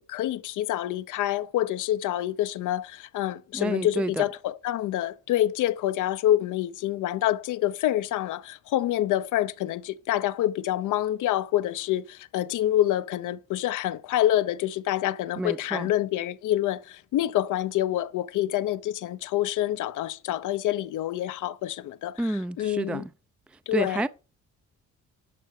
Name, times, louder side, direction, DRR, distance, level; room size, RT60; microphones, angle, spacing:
voice 1, 0.1-23.1 23.7-24.0, left 13 dB, 85° left, 0.8 m, -27 dB
voice 2, 3.5-4.2 15.4-15.9 22.2-23.1 23.7-24.1, right 1 dB, 5° right, 0.4 m, -29 dB
12.0 x 4.7 x 6.4 m
cardioid pair, 90°, 30 cm